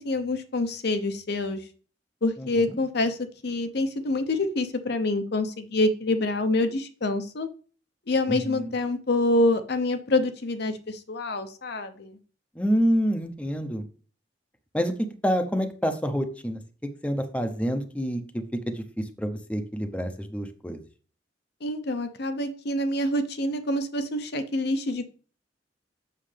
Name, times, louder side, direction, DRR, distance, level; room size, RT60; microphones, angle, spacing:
voice 1, 0.0-1.6 2.2-7.5 8.1-12.2 21.6-25.1, left 2 dB, 65° left, 8 dB, 0.8 m, -26 dB
voice 2, 2.4-2.8 8.3-8.7 12.6-13.8 14.7-16.6 17.0-20.8, equal, 5° left, 6 dB, 0.7 m, -28 dB
7.5 x 6.3 x 3.3 m, 0.39 s
head